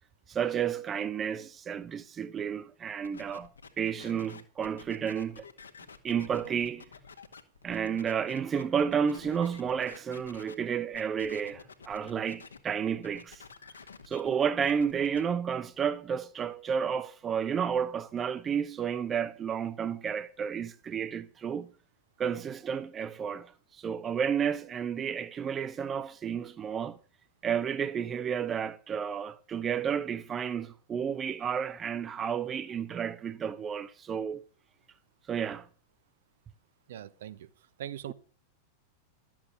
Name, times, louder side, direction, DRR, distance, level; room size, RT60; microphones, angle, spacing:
voice 1, 0.3-3.5 3.8-5.5 6.0-6.8 7.6-13.4 14.1-21.7 22.2-27.0 27.4-34.4 35.3-35.7 38.1-38.2, right 7 dB, 25° right, 0.7 m, -31 dB
sound 1, 3.0-10.5 10.9-12.6 12.9-15.2, left 5 dB, 70° left, 1.6 m, -50 dB
voice 2, 36.9-37.5 37.8-38.1, right 11 dB, 60° right, 0.9 m, -40 dB
12.5 x 7.5 x 8.2 m
figure-of-eight pair, 90°, 0 cm